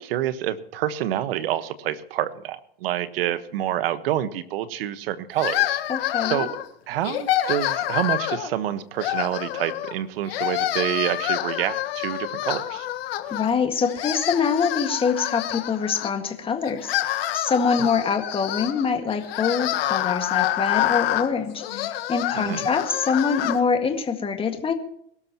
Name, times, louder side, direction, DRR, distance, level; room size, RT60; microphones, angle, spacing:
voice 1, 0.0-5.8 6.2-6.5 6.9-12.9 22.3-22.7, right 12 dB, 75° right, 13 dB, 1.3 m, -27 dB
sound 1, 5.4-6.7 7.0-8.5 9.0-9.9 10.3-13.5 13.8-16.1 16.6-23.6, left 13 dB, 75° left, 1.6 m, -27 dB
voice 2, 5.9-6.5 13.3-24.7, left 5 dB, 20° left, 6 dB, 1.9 m, -25 dB
22.5 x 13.0 x 3.0 m, 0.69 s
supercardioid pair, 130°, 30 cm